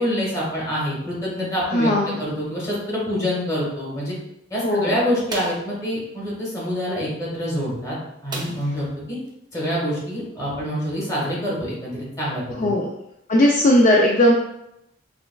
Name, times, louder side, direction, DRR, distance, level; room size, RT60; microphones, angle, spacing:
voice 1, 0.0-1.9 2.2-4.2 4.5-8.0 8.2-9.2 9.5-12.7, equal, 15° left, -6 dB, 1.4 m, -26 dB
voice 2, 1.7-2.2 4.6-4.9 12.6-12.9 13.3-14.3, left 1 dB, 45° left, -2 dB, 0.4 m, -17 dB
sound 1, 5.3-5.7 8.3-8.9 9.2-9.3 9.7-9.9, right 2 dB, 25° right, 0.5 m, -34 dB
5.9 x 2.3 x 2.2 m, 0.82 s
head